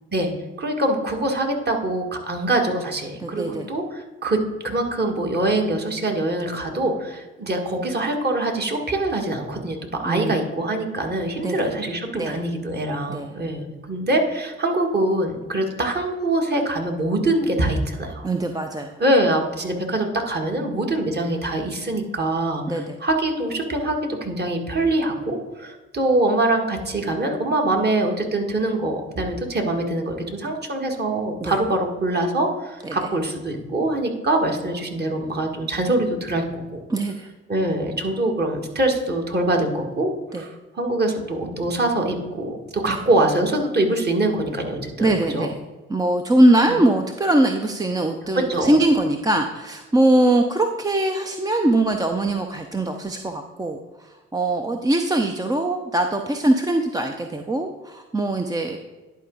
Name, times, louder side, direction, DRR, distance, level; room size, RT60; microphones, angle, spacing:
voice 1, 0.6-18.3 19.0-36.8 37.5-45.5 46.7-46.8 48.5-48.7, right 1 dB, 30° right, 2 dB, 1.7 m, -24 dB
voice 2, 3.2-3.7 10.0-10.3 11.4-11.7 12.1-12.4 13.1-13.3 18.2-18.9 22.7-23.0 31.4-31.6 32.8-33.0 36.9-37.3 40.3-40.4 42.9-43.0 45.0-45.6 45.9-58.8, right 1 dB, 10° right, 4 dB, 0.6 m, -21 dB
10.5 x 4.7 x 3.8 m, 1.2 s
hypercardioid pair, 50°, 32 cm